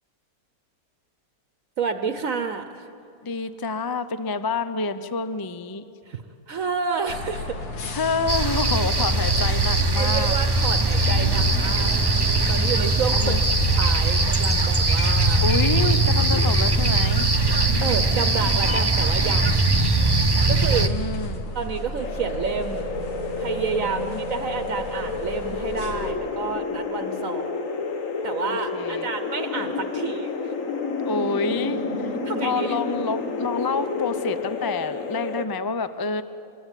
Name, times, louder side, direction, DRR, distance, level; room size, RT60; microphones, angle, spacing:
voice 1, 1.8-2.9 6.0-7.7 9.9-13.4 13.7-15.4 17.8-19.7 20.5-20.9 21.5-22.9 23.4-24.0 24.3-27.5 28.2-30.5 32.2-32.8, right 5 dB, 60° right, 8 dB, 1.2 m, -30 dB
voice 2, 3.2-5.8 7.9-10.4 12.8-13.4 15.4-17.3 20.4-21.5 23.8-24.2 28.4-29.1 31.0-32.1 32.4-36.2, left 4 dB, 35° left, 12 dB, 0.3 m, -28 dB
sound 1, 7.1-26.1, left 1 dB, 85° left, 2.0 m, -34 dB
sound 2, 8.3-20.9, right 2 dB, 20° right, 0.8 m, -20 dB
sound 3, 22.0-35.4, left 4 dB, 60° left, 1.7 m, -30 dB
24.5 x 21.5 x 9.1 m, 2.7 s
omnidirectional pair, 1.6 m